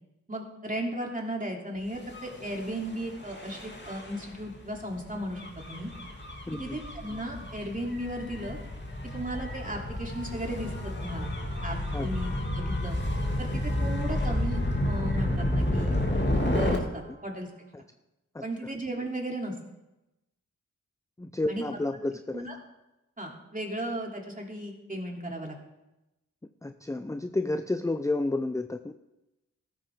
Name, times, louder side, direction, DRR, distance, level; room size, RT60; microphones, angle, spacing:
voice 1, 0.3-5.9 6.5-8.6 9.1-11.3 11.6-11.8 12.0-13.0 13.4-16.0 16.3-17.5 18.4-19.5 21.5-21.6 22.3-22.6 23.2-25.6, right 1 dB, 25° right, 0 dB, 3.0 m, -35 dB
Gull seagull / Waves surf / Siren, 2.0-16.8, left 1 dB, 35° left, 2.5 m, -31 dB
voice 2, 6.5-6.8 11.9-12.1 18.3-18.4 21.2-22.5 26.6-28.9, left 2 dB, 10° left, 9 dB, 0.5 m, -30 dB
14.5 x 13.5 x 3.7 m, 0.96 s
cardioid pair, 55°, 32 cm